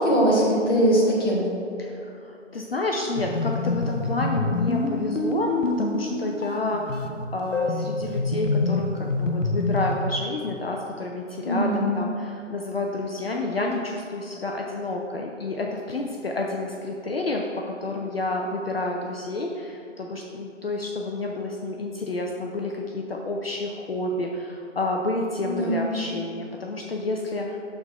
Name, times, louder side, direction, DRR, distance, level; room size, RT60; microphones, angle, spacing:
voice 1, 0.0-1.5 11.4-12.0 25.4-26.0, equal, 20° left, -6 dB, 1.2 m, -21 dB
voice 2, 1.8-27.6, left 2 dB, 50° left, 1 dB, 0.6 m, -30 dB
sound 1, 3.2-10.0, left 3 dB, 90° left, 0.7 m, -26 dB
6.9 x 3.7 x 5.6 m, 2.7 s
figure-of-eight pair, 145°, 37 cm